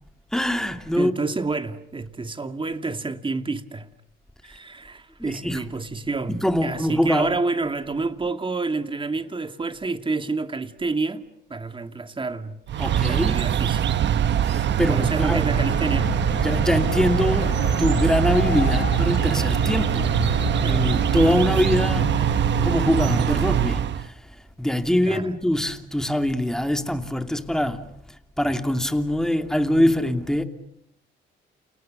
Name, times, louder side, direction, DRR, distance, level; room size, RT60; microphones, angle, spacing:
voice 1, 0.3-1.1 5.2-5.6 6.3-7.3 12.8-13.4 14.4-15.5 16.4-20.1 20.6-22.1 22.6-24.1 24.6-27.9 28.4-30.4, left 1 dB, 5° left, 2.8 m, -23 dB
voice 2, 1.0-3.9 4.4-12.6 13.0-14.0 14.9-16.1 20.6-20.9 25.0-25.3, right 3 dB, 25° right, 2.4 m, -29 dB
sound 1, 12.7-24.1, right 9 dB, 65° right, 1.2 m, -22 dB
Train, 15.5-23.7, left 11 dB, 80° left, 1.2 m, -33 dB
30.0 x 29.0 x 6.7 m
cardioid pair, 90°, 20 cm